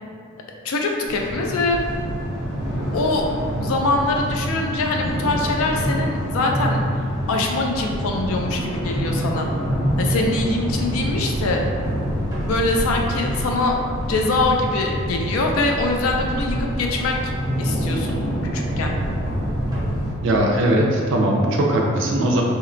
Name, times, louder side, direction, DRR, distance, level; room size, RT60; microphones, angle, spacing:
voice 1, 0.6-1.8 2.9-3.3 3.6-6.8 7.3-9.5 10.0-11.6 12.4-13.7 14.0-17.2 17.6-19.0, left 2 dB, 70° left, 1 dB, 0.3 m, -23 dB
sound 1, 1.1-20.1, equal, 20° left, 0.8 m, -26 dB
sound 2, 9.6-20.0, equal, 20° right, 0.7 m, -32 dB
voice 2, 20.2-22.4, right 1 dB, 55° right, -1 dB, 0.3 m, -19 dB
2.8 x 2.1 x 2.5 m, 2.3 s
head